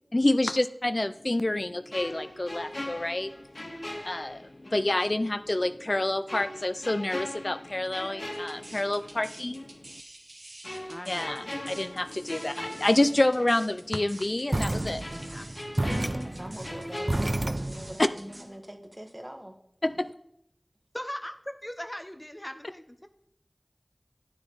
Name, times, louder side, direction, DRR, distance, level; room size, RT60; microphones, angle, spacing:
voice 1, 0.1-3.3 4.0-9.8 11.1-15.0 15.3-15.5 15.8-16.1 18.0-18.1 19.8-20.1, left 1 dB, 60° left, 12 dB, 0.4 m, -28 dB
sound 1, 1.9-4.9 5.2-5.3 6.3-9.2 9.6-9.8 10.6-13.6 13.9-14.1 15.0-18.0 18.3-18.5, left 1 dB, 80° left, 2.5 m, -40 dB
sound 2, 8.3-18.4, right 1 dB, 75° right, 1.8 m, -48 dB
voice 2, 10.9-11.8 20.9-21.3 21.6-23.1, left 1 dB, 25° left, 8 dB, 0.7 m, -39 dB
sound 3, 14.5-18.0, right 1 dB, 55° right, 0.3 m, -30 dB
voice 3, 16.2-19.6, equal, 25° right, 5 dB, 1.4 m, -43 dB
9.7 x 9.7 x 4.0 m, 0.75 s
wide cardioid pair, 40°, 0 cm